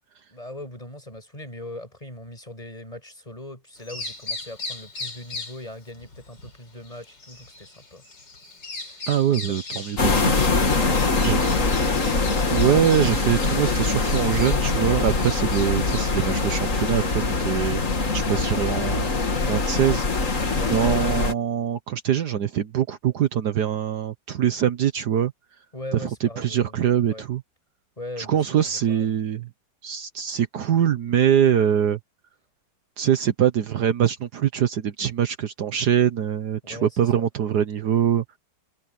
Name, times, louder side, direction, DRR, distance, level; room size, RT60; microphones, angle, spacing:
voice 1, 0.3-8.0 8.8-9.0 9.5-9.6 10.8-12.0 20.5-20.8 25.7-26.8 27.1-27.2 28.0-29.1 36.6-37.3, left 1 dB, 20° left, 7.7 m, -39 dB
Bird vocalization bird call bird song, 3.8-21.1, left 3 dB, 75° left, 4.8 m, -40 dB
voice 2, 9.1-10.8 11.2-11.4 12.5-17.8 18.1-19.1 19.4-25.3 25.9-27.4 28.2-29.5 29.8-32.0 33.0-38.2, right 9 dB, 65° right, 1.5 m, -23 dB
sound 1, 10.0-21.3, left 3 dB, 45° left, 2.7 m, -23 dB
omnidirectional pair, 1.9 m